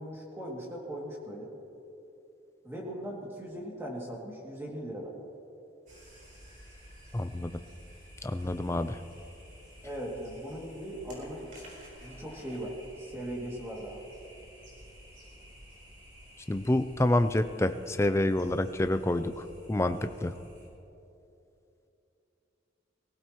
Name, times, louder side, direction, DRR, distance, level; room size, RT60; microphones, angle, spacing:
voice 1, 0.0-1.5 2.6-5.1 9.8-11.5 12.0-14.0 19.8-20.0, equal, 15° right, -3 dB, 2.4 m, -39 dB
sound 1, 5.9-20.7, equal, 45° right, 4.3 m, -52 dB
voice 2, 7.1-7.5 8.2-9.0 16.5-20.0 20.2-20.3, left 1 dB, 15° left, 10 dB, 0.4 m, -28 dB
22.5 x 16.0 x 3.1 m, 2.9 s
head